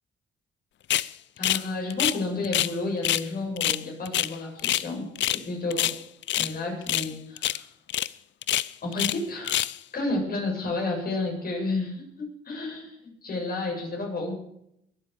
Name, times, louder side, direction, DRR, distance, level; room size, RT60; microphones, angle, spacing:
sound 1, 0.9-1.1 1.4-2.7 3.0-3.3 3.6-4.9 5.2-5.4 5.7-6.5 6.9-7.1 7.4-7.6 7.9-8.1 8.4-9.2 9.4-9.8, left 13 dB, 65° left, 0.6 m, -26 dB
voice 1, 1.4-6.0 6.4-7.6 8.8-9.6 9.9-14.3, left 2 dB, 50° left, 0 dB, 7.8 m, -31 dB
21.5 x 8.0 x 7.2 m, 0.76 s
cardioid pair, 90°, 20 cm